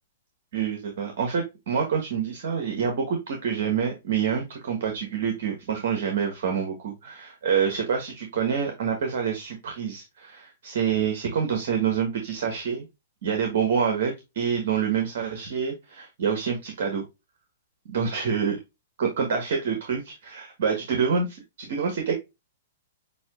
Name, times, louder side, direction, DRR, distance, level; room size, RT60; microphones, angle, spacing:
voice 1, 0.5-12.8 13.2-17.0 17.9-18.5 19.0-22.1, right 7 dB, 65° right, 4 dB, 1.4 m, -27 dB
7.0 x 2.8 x 2.4 m, 0.22 s
hypercardioid pair, 130°, 0 cm